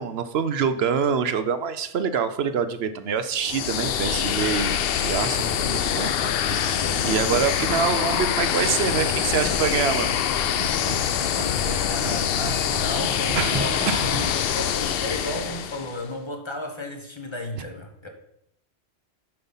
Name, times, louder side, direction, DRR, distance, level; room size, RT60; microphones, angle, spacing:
voice 1, 0.0-4.7 5.0-10.2 13.4-13.6 13.9-14.1, right 6 dB, 75° right, 11 dB, 0.9 m, -26 dB
sound 1, 3.3-16.0, left 9 dB, 70° left, 0.7 m, -25 dB
sound 2, 5.7-14.5, right 2 dB, 20° right, 1.3 m, -36 dB
voice 2, 11.8-18.1, left 1 dB, 25° left, 3 dB, 1.1 m, -34 dB
7.8 x 5.5 x 5.5 m, 0.75 s
omnidirectional pair, 1.1 m